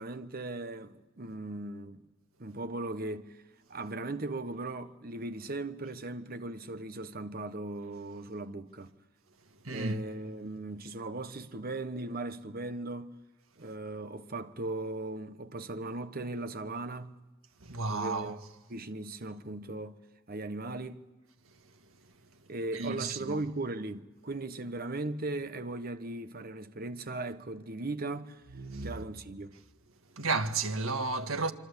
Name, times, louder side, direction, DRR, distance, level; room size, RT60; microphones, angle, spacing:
voice 1, 0.0-2.0 2.4-3.4 3.7-8.9 9.7-13.2 13.6-17.2 17.9-18.4 18.7-20.0 20.3-21.1 22.5-28.4 28.8-29.5, right 2 dB, 45° right, 1.1 m, -38 dB
voice 2, 9.6-10.0 17.6-18.4 22.7-23.4 28.5-29.0 30.2-31.5, right 3 dB, 75° right, 1.8 m, -32 dB
26.0 x 25.5 x 8.3 m
head